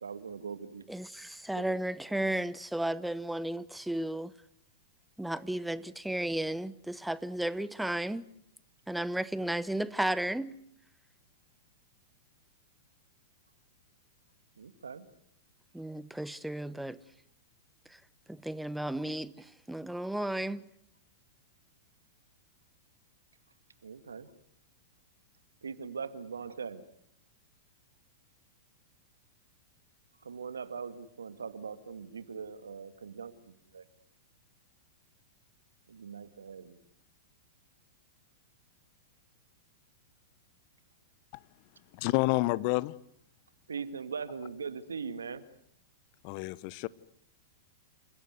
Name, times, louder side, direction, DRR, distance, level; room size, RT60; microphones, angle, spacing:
voice 1, 0.0-0.8 1.6-1.8 14.6-15.1 23.8-24.3 25.6-26.8 30.2-33.8 35.9-36.8 43.7-45.5, right 5 dB, 85° right, 1.9 m, -41 dB
voice 2, 0.9-4.3 5.2-8.3 8.9-10.6 15.7-17.0 17.9-18.0 18.3-20.7, right 1 dB, 5° right, 0.9 m, -34 dB
voice 3, 41.9-42.9 46.2-46.9, left 21 dB, 50° left, 0.9 m, -29 dB
29.0 x 16.5 x 9.5 m
hypercardioid pair, 105°, 0 cm